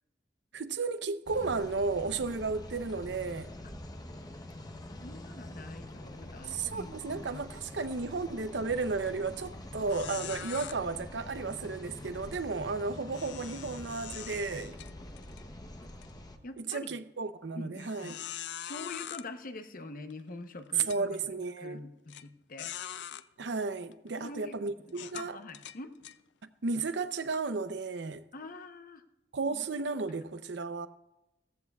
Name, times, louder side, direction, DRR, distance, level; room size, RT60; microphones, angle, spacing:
voice 1, 0.5-3.5 6.5-14.8 16.7-18.2 20.9-21.8 23.4-25.4 26.6-28.2 29.3-30.9, right 4 dB, 80° right, 0.7 m, -34 dB
sound 1, 1.3-16.4, left 1 dB, 20° left, 0.8 m, -45 dB
voice 2, 4.9-7.4 16.4-17.0 17.5-18.2 18.6-21.2 21.6-22.9 24.2-24.6 24.8-25.9 28.3-29.0 29.5-29.7, left 3 dB, 50° left, 0.8 m, -45 dB
sound 2, 8.8-9.1 9.4-9.5 9.9-10.7 13.1-15.4 15.9-16.1 16.7-16.8 17.8-19.2 20.1-20.2 20.7-21.0 22.1-22.2 22.6-23.2 23.9-24.1 24.9-26.2, left 11 dB, 75° left, 0.4 m, -43 dB
16.5 x 14.5 x 2.4 m
head